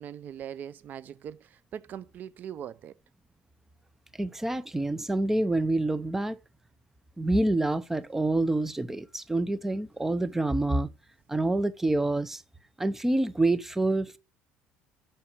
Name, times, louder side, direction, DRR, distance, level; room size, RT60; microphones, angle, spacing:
voice 1, 0.0-2.9, right 9 dB, 50° right, 0.5 m, -41 dB
voice 2, 4.2-6.4 7.2-10.9 11.3-12.4 12.8-14.2, right 2 dB, 10° right, 0.7 m, -27 dB
6.9 x 5.7 x 6.5 m
cardioid pair, 110°, 4 cm